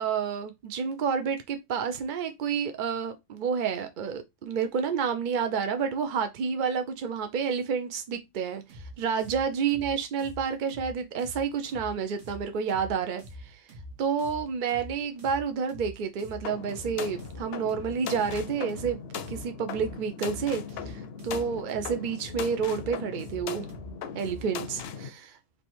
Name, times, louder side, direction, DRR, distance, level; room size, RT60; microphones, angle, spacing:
voice 1, 0.0-13.7 14.0-19.0 19.3-23.7 24.1-25.4, right 6 dB, 55° right, 0.6 m, -30 dB
sound 1, 8.7-24.6, equal, 80° right, 1.4 m, -45 dB
sound 2, 16.4-25.1, left 7 dB, 65° left, 0.7 m, -39 dB
3.3 x 2.8 x 4.2 m
omnidirectional pair, 1.2 m